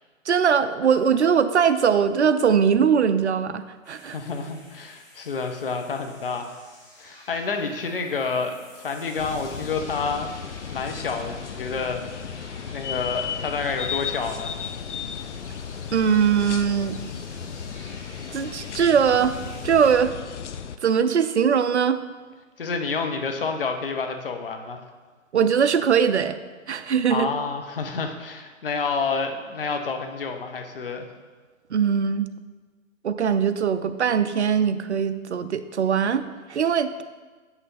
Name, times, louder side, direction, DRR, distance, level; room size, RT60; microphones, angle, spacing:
voice 1, 0.3-4.2 15.9-17.0 18.3-19.4 19.6-20.2 20.8-22.0 25.3-26.4 26.7-27.3 31.7-32.3 33.0-37.0, right 7 dB, 55° right, 11 dB, 0.5 m, -21 dB
sound 1, 3.8-19.9, left 1 dB, 15° left, 0.8 m, -48 dB
voice 2, 4.0-6.5 7.0-10.3 10.7-12.3 12.7-14.5 22.6-24.8 27.1-31.1, left 4 dB, 45° left, 5 dB, 0.8 m, -29 dB
sound 2, 9.2-20.8, left 7 dB, 60° left, 0.5 m, -35 dB
7.5 x 5.9 x 4.1 m, 1.4 s
figure-of-eight pair, 150°, 41 cm